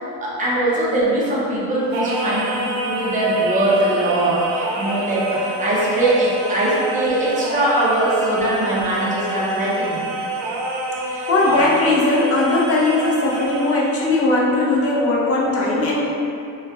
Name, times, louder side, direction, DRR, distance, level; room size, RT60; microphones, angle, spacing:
voice 1, 0.2-10.1 11.1-11.6, right 1 dB, 20° right, -7 dB, 0.7 m, -21 dB
Singing, 1.9-14.0, right 1 dB, 85° right, 0.6 m, -27 dB
voice 2, 11.3-16.0, left 2 dB, 40° left, -4 dB, 0.7 m, -19 dB
4.2 x 2.2 x 2.3 m, 2.6 s
cardioid pair, 140°, 35 cm